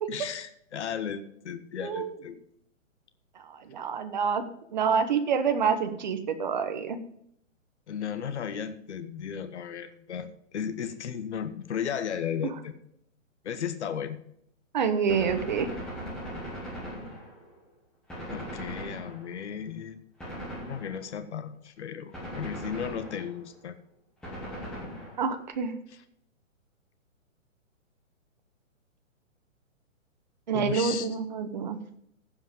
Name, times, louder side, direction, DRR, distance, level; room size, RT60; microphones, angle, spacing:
voice 1, 0.1-2.4 7.9-12.7 13.4-14.2 18.3-20.0 20.6-23.8 30.5-31.1, left 8 dB, 60° left, 11 dB, 1.0 m, -35 dB
voice 2, 1.8-2.1 3.5-4.4 4.7-7.0 14.7-15.7 25.2-25.8 30.5-31.8, right 6 dB, 35° right, 8 dB, 0.9 m, -27 dB
Gunshot gunfire, 15.1-17.6 18.1-19.5 20.2-21.2 22.1-23.5 24.2-25.5, equal, ahead, 1.0 m, -39 dB
15.0 x 5.2 x 5.2 m, 0.71 s
hypercardioid pair, 175°, 40 cm